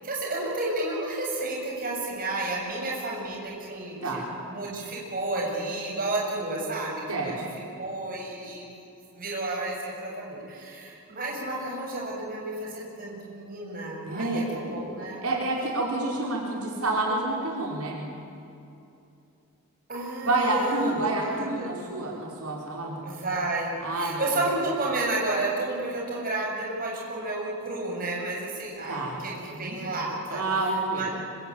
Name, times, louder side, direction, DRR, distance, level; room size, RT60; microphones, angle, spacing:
voice 1, 0.0-4.2 4.5-7.5 7.8-8.7 9.1-15.2 19.9-21.7 23.0-30.5 30.9-31.1, right 2 dB, 40° right, -2 dB, 7.5 m, -31 dB
voice 2, 14.0-14.4 15.2-18.0 20.2-23.1 23.8-24.2 28.9-29.1 29.5-29.8 30.3-31.1, right 2 dB, 85° right, -2 dB, 5.4 m, -28 dB
26.0 x 25.5 x 8.9 m, 2.7 s
head